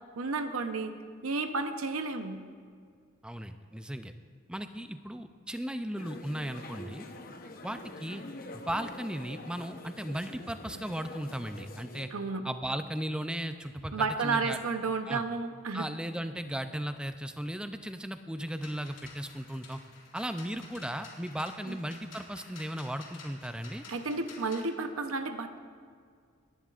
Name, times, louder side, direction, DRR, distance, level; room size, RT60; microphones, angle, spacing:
voice 1, 0.2-0.9 1.2-2.4 12.1-12.5 13.9-15.9 21.7-21.8 23.9-25.6, right 4 dB, 90° right, 8 dB, 0.8 m, -32 dB
voice 2, 3.2-4.1 4.5-7.0 7.6-8.2 8.5-12.1 12.4-14.6 15.1-15.2 15.7-19.8 20.1-23.8, equal, 5° right, 8 dB, 0.4 m, -36 dB
sound 1, 6.0-12.1, left 2 dB, 45° left, 0.9 m, -46 dB
sound 2, 18.5-24.7, left 4 dB, 65° left, 3.6 m, -51 dB
26.5 x 11.0 x 2.5 m, 2.1 s
head